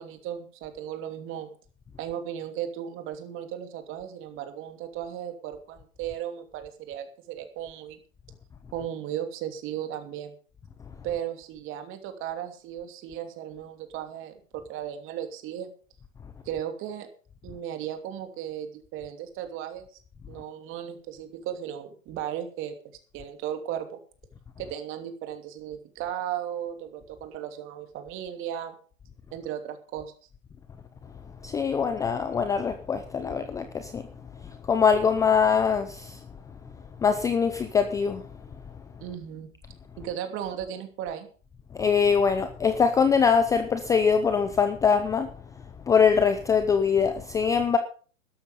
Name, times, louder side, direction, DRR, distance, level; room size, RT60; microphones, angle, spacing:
voice 1, 0.0-1.5 2.0-8.0 8.7-10.4 11.0-15.7 16.4-17.1 17.4-19.9 20.3-24.0 24.6-28.8 29.3-30.1 39.0-39.5 40.0-41.3, right 10 dB, 30° right, 2.8 m, -36 dB
voice 2, 31.4-34.0 34.7-36.2 37.0-38.2 41.7-45.3 45.9-47.8, left 6 dB, 10° left, 0.6 m, -23 dB
13.0 x 12.0 x 5.3 m
hypercardioid pair, 130°, 39 cm